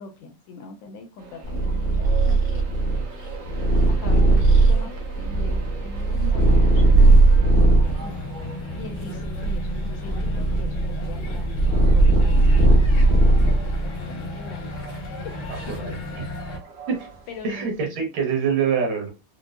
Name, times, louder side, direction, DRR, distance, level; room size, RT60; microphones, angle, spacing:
voice 1, 0.0-2.9 3.9-8.2 8.7-10.3 10.6-13.4 13.7-14.7 15.2-16.0 17.3-17.9, left 3 dB, 75° left, 1.2 m, -41 dB
Train, 1.2-17.8, right 3 dB, 60° right, 0.8 m, -43 dB
Purr, 1.4-8.0 8.6-13.9, right 2 dB, 35° right, 1.0 m, -18 dB
sound 1, 7.8-16.6, left 2 dB, 55° left, 0.9 m, -34 dB
voice 2, 15.5-16.3 16.9-17.1 17.4-19.1, right 6 dB, 80° right, 1.9 m, -25 dB
4.4 x 2.1 x 2.4 m
omnidirectional pair, 2.3 m